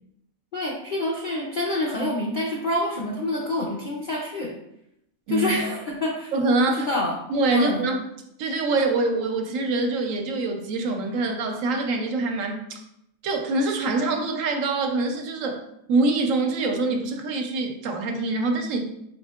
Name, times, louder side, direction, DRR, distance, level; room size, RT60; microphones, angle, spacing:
voice 1, 0.5-4.5 5.3-6.3 6.7-7.1 7.5-7.9, left 1 dB, 65° left, -3 dB, 0.5 m, -27 dB
voice 2, 6.3-6.9 7.3-8.0 8.4-12.8 13.2-15.6 15.9-18.8, right 2 dB, 75° right, 4 dB, 0.9 m, -24 dB
4.5 x 3.5 x 2.2 m, 0.79 s
omnidirectional pair, 1.5 m